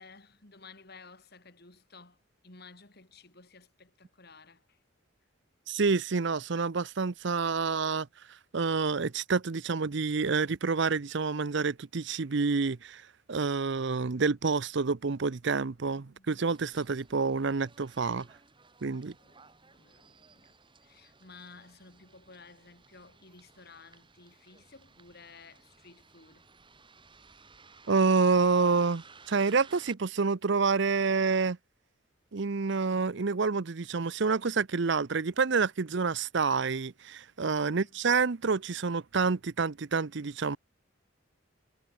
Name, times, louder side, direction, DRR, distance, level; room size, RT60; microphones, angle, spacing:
voice 1, 0.0-4.8 15.9-16.4 19.2-26.5 37.5-38.0, left 4 dB, 50° left, 3.4 m, -55 dB
voice 2, 5.7-8.1 8.5-13.0 13.3-18.3 18.8-19.1 27.9-31.6 32.3-40.6, right 4 dB, 60° right, 0.6 m, -28 dB
Bus, 16.5-29.9, right 4 dB, 25° right, 3.3 m, -57 dB
head